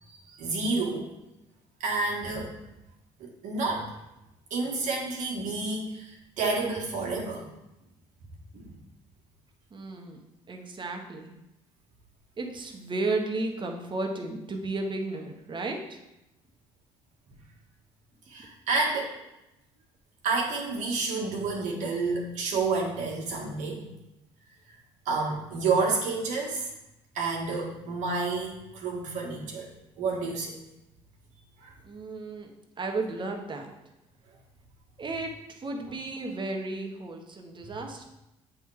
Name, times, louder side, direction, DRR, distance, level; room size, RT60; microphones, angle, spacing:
voice 1, 0.0-1.1 1.8-2.6 3.2-3.9 4.5-7.5 8.5-8.7 18.3-19.1 20.2-23.9 25.1-26.7 27.1-29.7 30.0-30.6 31.6-31.7 35.9-36.0, right 3 dB, 70° right, -2 dB, 1.8 m, -30 dB
voice 2, 9.7-10.2 10.5-11.3 12.4-16.0 31.8-32.5 32.8-33.7 35.0-38.0, right 2 dB, 35° right, 3 dB, 1.3 m, -33 dB
7.8 x 3.7 x 4.8 m, 0.91 s
supercardioid pair, 65°, 13 cm